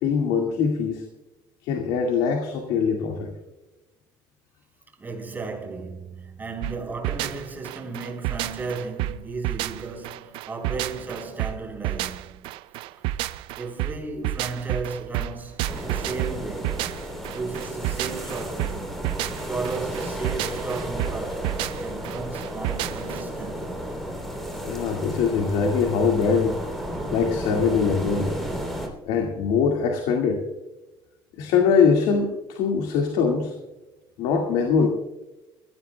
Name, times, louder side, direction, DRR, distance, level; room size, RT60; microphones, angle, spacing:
voice 1, 0.0-1.0 1.6-3.3 24.6-26.5 27.1-28.3 29.1-30.4 31.4-33.5 34.2-34.9, left 5 dB, 85° left, 2.0 m, -22 dB
voice 2, 5.0-12.5 13.6-19.0 19.5-23.7, right 4 dB, 20° right, 3.9 m, -35 dB
sound 1, 6.6-23.2, right 14 dB, 80° right, 0.5 m, -30 dB
sound 2, 15.7-28.9, equal, 5° left, 3.3 m, -33 dB
22.0 x 16.0 x 2.3 m
cardioid pair, 130°, 9 cm